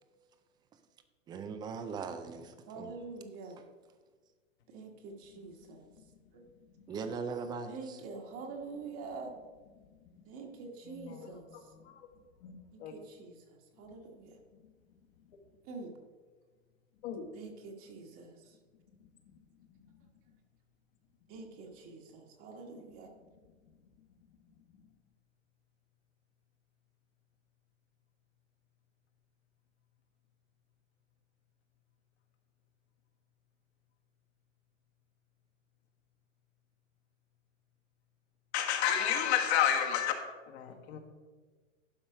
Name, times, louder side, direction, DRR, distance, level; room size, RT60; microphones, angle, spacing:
voice 1, 1.3-2.9 6.9-8.0, right 5 dB, 10° right, 0.4 m, -39 dB
voice 2, 2.7-3.6 4.7-5.9 6.3-6.4 7.7-9.3 10.3-11.7 12.7-14.4 15.6-15.9 17.3-18.6 21.3-23.1, right 4 dB, 35° right, 1.4 m, -46 dB
voice 3, 5.7-6.0 6.7-6.9 10.2-10.3 10.8-12.0 12.4-12.9 17.0-17.3 19.7-19.8 38.5-41.0, left 9 dB, 55° left, 1.6 m, -32 dB
11.5 x 5.4 x 4.8 m
hypercardioid pair, 120°, 40 cm